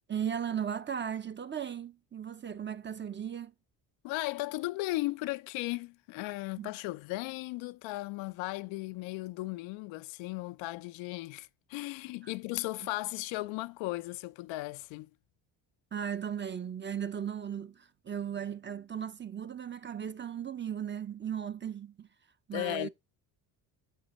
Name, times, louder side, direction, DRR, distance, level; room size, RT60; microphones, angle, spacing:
voice 1, 0.1-3.5 6.6-6.7 15.9-22.1 22.5-22.9, right 8 dB, 25° right, 0.6 m, -36 dB
voice 2, 4.0-15.1 22.5-22.9, left 20 dB, 80° left, 0.5 m, -36 dB
9.0 x 7.1 x 3.0 m
supercardioid pair, 75°, 47 cm